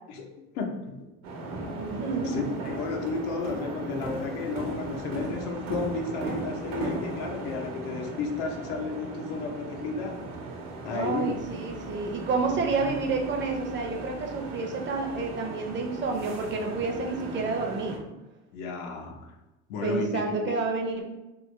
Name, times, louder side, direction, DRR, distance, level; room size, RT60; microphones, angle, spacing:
voice 1, 0.5-1.0 2.2-10.2 10.8-11.4 12.4-12.5 18.5-19.3 19.7-20.5, left 4 dB, 90° left, 3 dB, 0.6 m, -33 dB
sound 1, 1.2-18.0, right 2 dB, 70° right, 0.8 m, -37 dB
voice 2, 1.7-2.5 10.9-18.0 19.8-21.0, right 4 dB, 35° right, 2 dB, 0.5 m, -29 dB
3.3 x 2.0 x 3.1 m, 1.0 s
supercardioid pair, 115°, 34 cm